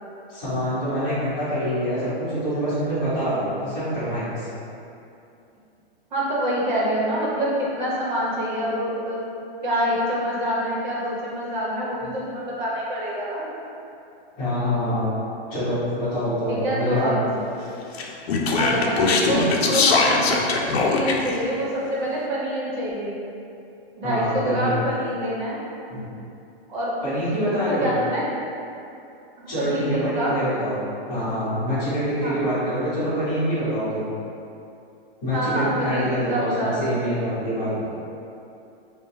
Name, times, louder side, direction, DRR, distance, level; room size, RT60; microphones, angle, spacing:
voice 1, 0.3-4.6 12.0-12.1 14.4-15.1 15.5-17.2 24.0-24.8 25.9-26.0 27.0-27.9 29.5-30.8 31.1-34.1 35.2-37.9, equal, 15° left, -15 dB, 1.4 m, -25 dB
voice 2, 6.1-9.2 9.6-13.5 16.5-17.2 18.6-23.1 24.0-25.6 26.7-27.1 27.7-28.2 29.4-30.3 32.2-32.4 35.3-36.9, equal, 50° right, -6 dB, 1.0 m, -26 dB
Speech, 17.9-21.4, left 3 dB, 80° left, 0.6 m, -21 dB
5.4 x 2.3 x 2.8 m, 2.7 s
supercardioid pair, 175°, 31 cm